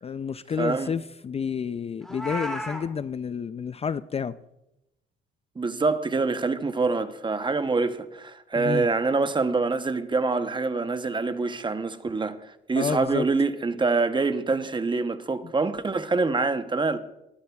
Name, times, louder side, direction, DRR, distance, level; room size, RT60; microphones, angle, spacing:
voice 1, 0.0-4.4 8.6-8.9 12.8-13.3 15.4-15.5, left 6 dB, 30° left, 0.4 m, -30 dB
voice 2, 0.6-0.9 5.6-12.4 12.7-17.0, right 3 dB, 25° right, 0.8 m, -25 dB
Meow, 2.0-2.8, equal, ahead, 2.5 m, -33 dB
20.0 x 12.0 x 2.3 m
cardioid pair, 90°, 20 cm